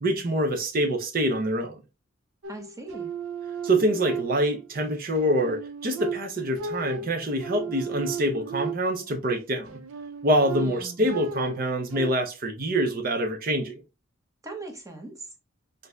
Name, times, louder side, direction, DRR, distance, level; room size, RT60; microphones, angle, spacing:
voice 1, 0.0-1.8 3.6-9.8 10.2-13.8, right 1 dB, 45° right, 0.6 m, -25 dB
sound 1, 2.4-4.7 5.2-9.2 9.7-12.1, right 5 dB, 90° right, 0.5 m, -35 dB
voice 2, 2.5-3.1 10.6-11.2 14.4-15.3, right 2 dB, 15° right, 0.8 m, -40 dB
6.1 x 2.6 x 2.3 m
head